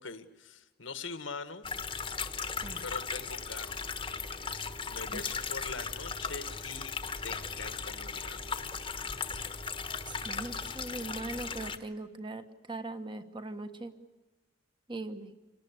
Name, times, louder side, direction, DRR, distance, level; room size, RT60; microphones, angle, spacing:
voice 1, 0.0-1.7 2.8-3.8 4.9-6.9 7.2-8.6, left 4 dB, 80° left, 11 dB, 1.7 m, -43 dB
sound 1, 1.6-11.8, left 5 dB, 25° left, 1.3 m, -37 dB
voice 2, 10.0-13.9 14.9-15.3, right 2 dB, 25° right, 8 dB, 1.4 m, -40 dB
26.5 x 18.5 x 8.3 m, 1.2 s
head